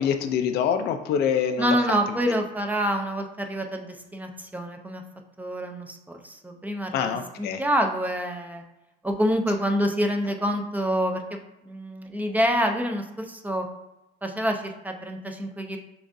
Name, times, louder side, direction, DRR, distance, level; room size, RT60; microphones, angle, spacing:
voice 1, 0.0-2.0 6.9-7.6, left 8 dB, 70° left, 7 dB, 0.5 m, -25 dB
voice 2, 1.6-5.0 5.4-8.6 9.0-11.4 11.7-13.7 14.2-15.8, equal, 10° right, 4 dB, 0.5 m, -27 dB
6.8 x 2.4 x 2.6 m, 0.96 s
cardioid pair, 110°, 17 cm